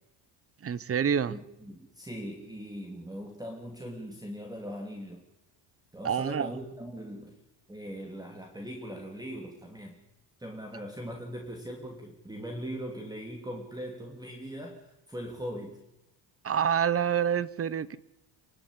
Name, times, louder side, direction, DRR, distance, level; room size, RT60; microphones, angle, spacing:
voice 1, 0.6-1.4 6.0-6.5 16.4-18.0, right 8 dB, 30° right, 1.1 m, -27 dB
voice 2, 1.3-5.2 5.9-7.3 7.7-10.0 10.4-15.8, equal, 10° right, 2.9 m, -40 dB
28.0 x 12.5 x 10.0 m
cardioid pair, 125°, 45 cm